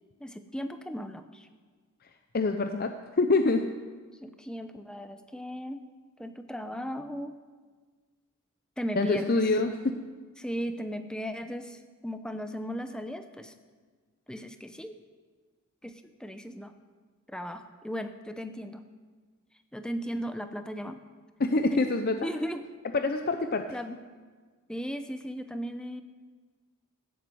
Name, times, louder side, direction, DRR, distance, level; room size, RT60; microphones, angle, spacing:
voice 1, 0.2-1.5 4.2-5.8 6.2-7.4 8.8-9.4 10.4-13.5 14.3-14.9 15.8-15.9 16.2-16.7 17.3-18.8 19.7-21.0 21.7-21.8 22.2-22.6 23.7-24.0 24.7-26.0, equal, 5° left, 8 dB, 0.7 m, -36 dB
voice 2, 2.3-3.7 9.0-9.8 21.4-22.2 22.9-23.7, left 3 dB, 45° left, 7 dB, 0.6 m, -26 dB
15.5 x 7.5 x 7.7 m, 1.5 s
head